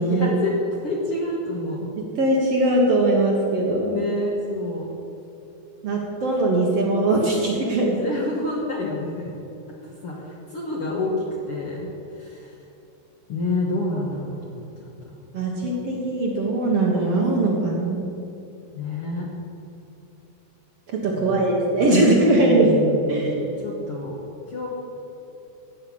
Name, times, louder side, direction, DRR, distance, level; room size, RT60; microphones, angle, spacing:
voice 1, 0.0-1.9 3.8-4.9 7.8-9.4 9.8-11.9 12.1-12.6 13.3-15.1 15.6-15.7 18.7-19.3 21.2-21.6 22.3-24.2 24.5-24.7, left 2 dB, 55° left, -3 dB, 1.7 m, -28 dB
voice 2, 2.0-3.9 5.8-8.0 15.3-18.1 20.9-22.7 23.1-23.4, right 2 dB, 55° right, -2 dB, 2.0 m, -21 dB
15.5 x 5.8 x 8.6 m, 2.8 s
omnidirectional pair, 4.1 m